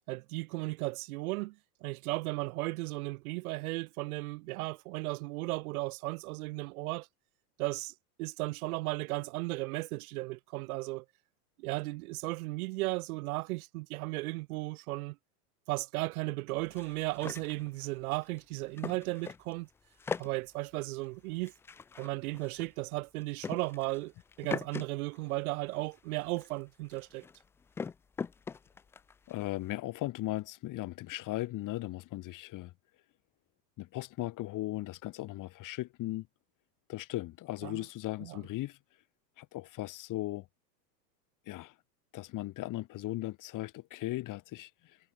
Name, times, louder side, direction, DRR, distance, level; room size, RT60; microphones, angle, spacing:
voice 1, 0.1-7.1 7.6-11.0 11.6-15.2 15.7-19.7 20.2-21.5 22.0-24.1 24.4-27.3 37.6-37.8 38.2-38.4, right 22 dB, 60° right, 1.2 m, -35 dB
sound 1, 16.6-19.6 19.8-24.9 25.1-29.7, left 5 dB, 5° left, 0.3 m, -42 dB
voice 2, 29.3-32.7 33.8-36.3 36.9-38.8 39.4-40.5 41.5-41.7 42.1-45.0, left 17 dB, 40° left, 5.3 m, -37 dB
supercardioid pair, 130°, 49 cm